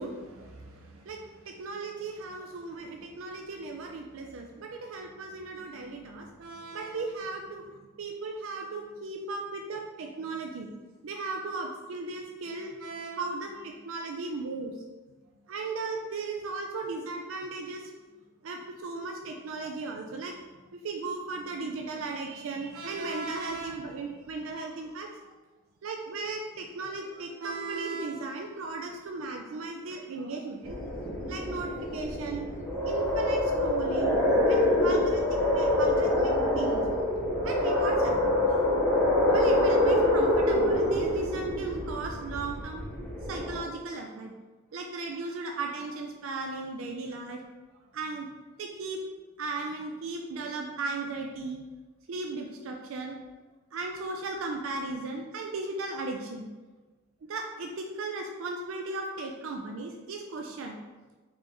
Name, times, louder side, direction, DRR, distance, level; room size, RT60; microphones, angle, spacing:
voice 1, 0.0-7.7 8.0-10.7 11.0-14.7 15.5-17.9 18.4-20.3 20.7-25.1 25.8-30.8 31.3-32.5 32.8-34.1 34.5-36.8 37.4-38.6 39.3-42.8 43.2-44.3 44.7-47.4 47.9-48.3 48.6-49.0 49.4-51.6 52.1-53.2 53.7-56.5 57.3-60.8, right 3 dB, 90° right, 2 dB, 0.4 m, -36 dB
sound 1, 30.6-43.6, left 1 dB, 5° left, 0.9 m, -26 dB
3.9 x 3.3 x 3.5 m, 1.2 s
head